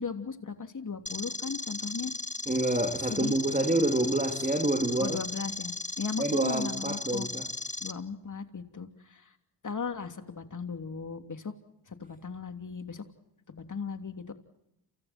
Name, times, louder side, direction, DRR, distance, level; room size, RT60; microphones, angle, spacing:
voice 1, 0.0-2.1 3.1-3.4 5.0-7.3 7.8-9.4 9.6-11.5 11.9-13.0 13.5-14.3, left 5 dB, 40° left, 3.2 m, -37 dB
sound 1, 1.1-7.9, left 3 dB, 15° left, 1.5 m, -36 dB
voice 2, 2.5-5.2 6.2-7.4, right 2 dB, 15° right, 3.0 m, -27 dB
29.0 x 28.5 x 4.5 m
cardioid pair, 65°, 49 cm